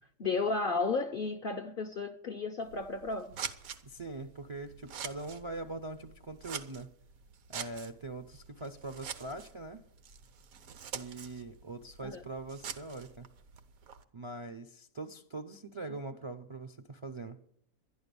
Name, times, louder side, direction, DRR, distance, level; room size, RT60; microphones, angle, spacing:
voice 1, 0.2-3.4 12.0-12.2, left 4 dB, 55° left, 0.6 m, -33 dB
Scissors, 2.6-14.0, right 7 dB, 70° right, 1.3 m, -46 dB
voice 2, 3.8-6.9 7.5-9.9 10.9-13.3 14.1-17.4, right 2 dB, 40° right, 0.4 m, -42 dB
11.0 x 11.0 x 6.8 m
omnidirectional pair, 1.6 m